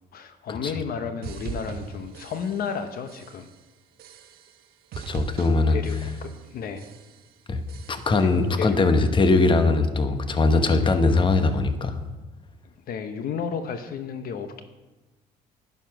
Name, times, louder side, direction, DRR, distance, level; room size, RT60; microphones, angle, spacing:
voice 1, 0.1-3.5 5.7-6.9 8.2-8.3 8.6-8.8 12.9-14.6, left 6 dB, 60° left, 8 dB, 1.0 m, -32 dB
sound 1, 1.2-2.8 3.1-3.6 4.0-4.6 4.9-6.5 6.8-7.3 7.7-8.3, right 6 dB, 65° right, 1.4 m, -40 dB
voice 2, 5.1-5.8 7.5-7.6 7.9-12.0, left 3 dB, 30° left, 8 dB, 1.1 m, -21 dB
11.0 x 9.8 x 5.9 m, 1.2 s
cardioid pair, 110°, 17 cm